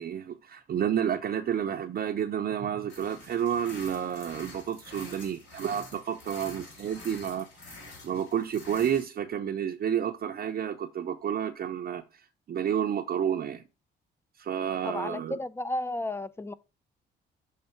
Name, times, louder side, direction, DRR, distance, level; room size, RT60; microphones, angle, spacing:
voice 1, 0.0-13.6 14.4-15.4, right 9 dB, 50° right, 0.6 m, -30 dB
sound 1, 2.9-9.1, left 2 dB, 65° left, 3.3 m, -47 dB
voice 2, 14.8-16.5, left 2 dB, 10° left, 0.4 m, -33 dB
6.6 x 3.3 x 4.3 m
cardioid pair, 90°, 20 cm